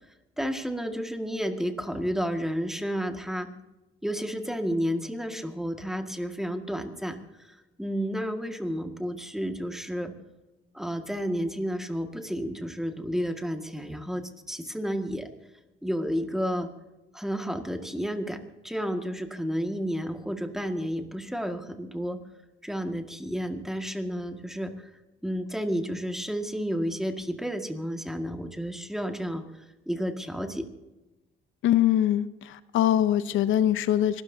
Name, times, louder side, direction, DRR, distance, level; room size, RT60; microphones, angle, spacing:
voice 1, 0.4-3.5 4.0-10.1 10.7-15.3 15.8-16.7 17.1-18.4 18.6-22.2 22.6-24.9 25.2-30.7, equal, ahead, 5 dB, 1.8 m, -31 dB
voice 2, 31.6-34.2, left 11 dB, 80° left, 15 dB, 0.7 m, -23 dB
26.0 x 13.0 x 2.8 m, 1.1 s
cardioid pair, 90°, 20 cm